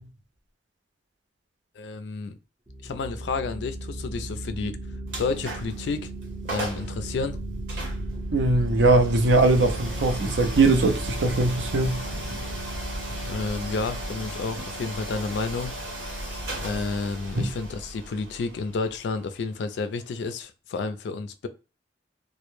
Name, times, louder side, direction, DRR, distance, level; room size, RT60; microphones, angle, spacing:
voice 1, 1.8-2.4 2.8-4.7 5.2-6.1 6.4-7.4 13.2-15.8 16.5-21.5, left 4 dB, 70° left, 0.3 m, -30 dB
sound 1, 2.7-18.9, right 1 dB, 25° right, 0.5 m, -35 dB
sound 2, 5.1-5.8 6.2-6.3 6.5-6.9 7.7-20.4, right 1 dB, 85° right, 1.1 m, -38 dB
voice 2, 8.3-12.0 17.4-17.5, right 2 dB, 70° right, 0.5 m, -21 dB
2.1 x 2.0 x 3.0 m
head